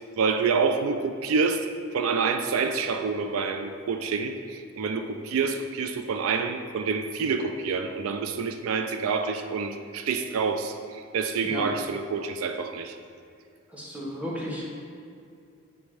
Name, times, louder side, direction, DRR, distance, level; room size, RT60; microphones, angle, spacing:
voice 1, 0.2-1.7 1.9-13.0, right 5 dB, 80° right, 7 dB, 0.4 m, -27 dB
voice 2, 13.7-14.6, equal, 5° right, -6 dB, 1.1 m, -34 dB
7.3 x 3.5 x 4.8 m, 2.4 s
head